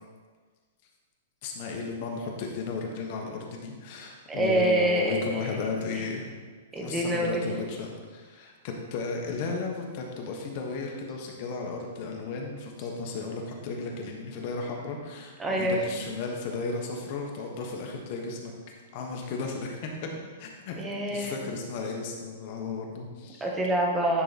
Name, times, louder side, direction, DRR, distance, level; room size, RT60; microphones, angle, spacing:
voice 1, 1.4-6.2 6.7-18.5 18.9-20.1 20.4-20.8 21.1-23.5, left 4 dB, 40° left, 1 dB, 1.2 m, -34 dB
voice 2, 4.3-5.5 6.0-6.1 6.7-7.6 15.4-15.8 20.8-21.3 23.4-24.2, right 1 dB, 10° right, -1 dB, 1.0 m, -26 dB
9.9 x 3.8 x 4.2 m, 1.5 s
hypercardioid pair, 165°, 0 cm